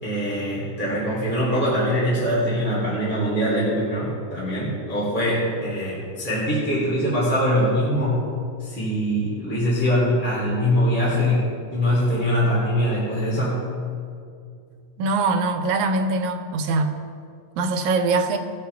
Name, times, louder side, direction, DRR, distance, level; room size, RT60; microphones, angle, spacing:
voice 1, 0.0-8.2 8.6-13.6, equal, 5° left, -8 dB, 2.8 m, -23 dB
voice 2, 15.0-16.9 17.6-18.4, right 3 dB, 85° right, 5 dB, 2.3 m, -22 dB
19.0 x 7.2 x 3.5 m, 2.3 s
omnidirectional pair, 3.3 m